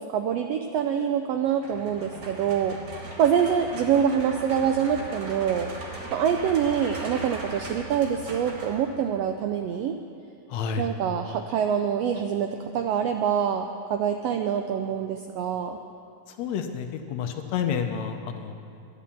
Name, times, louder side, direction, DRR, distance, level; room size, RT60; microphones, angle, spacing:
voice 1, 0.0-2.8 3.2-5.7 6.1-9.9 10.8-15.8, right 8 dB, 85° right, 6 dB, 1.4 m, -25 dB
sound 1, 1.6-9.2, right 2 dB, 40° right, 1.4 m, -38 dB
voice 2, 10.5-10.9 16.3-18.6, left 7 dB, 75° left, 5 dB, 1.9 m, -30 dB
11.5 x 10.0 x 7.1 m, 2.6 s
omnidirectional pair, 3.4 m